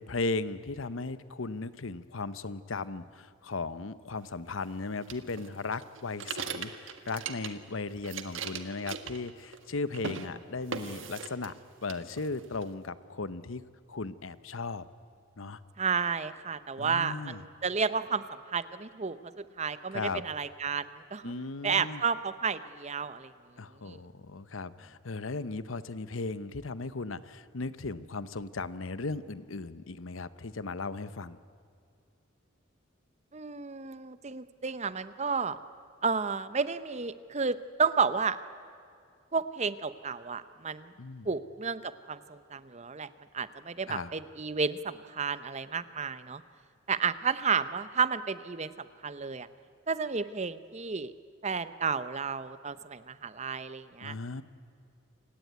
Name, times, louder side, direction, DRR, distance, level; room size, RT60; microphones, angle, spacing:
voice 1, 0.0-11.5 11.8-13.6 13.9-14.8 15.4-15.6 16.8-17.4 19.9-20.2 21.2-22.0 23.6-31.4 41.0-41.3 43.9-44.1 54.0-54.4, left 3 dB, 80° left, 15 dB, 0.9 m, -36 dB
sound 1, 5.1-7.7 8.0-9.7 9.9-10.3 10.7-11.6 11.9-12.7, right 6 dB, 70° right, 1.6 m, -39 dB
voice 2, 15.8-21.3 21.6-23.3 23.8-24.0 33.3-35.6 36.0-38.4 39.3-40.9 41.2-43.1 43.3-46.4 46.9-49.5 49.9-51.1 51.4-54.1, right 5 dB, 35° right, 14 dB, 0.8 m, -32 dB
28.5 x 17.5 x 9.5 m, 2.4 s
head